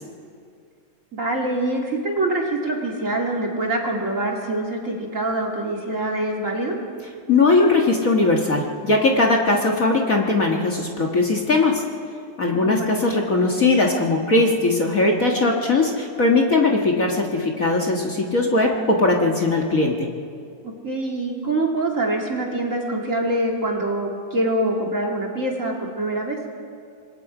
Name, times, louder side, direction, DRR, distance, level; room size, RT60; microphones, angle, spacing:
voice 1, 1.1-6.8 12.6-13.0 20.8-26.4, right 2 dB, 30° right, 0 dB, 2.0 m, -25 dB
voice 2, 7.3-11.8 12.4-20.1, left 3 dB, 40° left, 1 dB, 1.3 m, -19 dB
26.5 x 21.5 x 5.0 m, 2.3 s
omnidirectional pair, 3.5 m